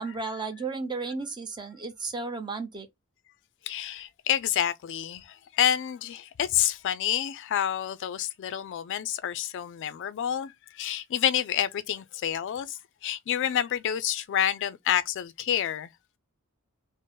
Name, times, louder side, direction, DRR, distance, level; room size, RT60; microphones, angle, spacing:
voice 1, 0.0-2.9, right 4 dB, 20° right, 0.7 m, -34 dB
voice 2, 3.7-15.9, left 10 dB, 60° left, 0.3 m, -28 dB
3.7 x 2.0 x 3.7 m
head